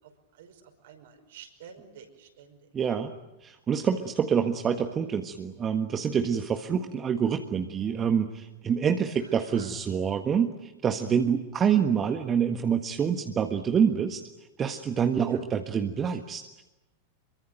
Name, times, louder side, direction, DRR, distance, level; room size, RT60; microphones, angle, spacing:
voice 1, 0.0-2.6 6.6-6.8 9.5-9.7 15.3-15.4, right 8 dB, 55° right, 5 dB, 5.5 m, -50 dB
voice 2, 2.7-3.1 3.4-14.2 14.6-16.6, right 7 dB, 25° right, 6 dB, 1.6 m, -26 dB
26.5 x 24.0 x 9.2 m, 1.0 s
figure-of-eight pair, 90°, 0 cm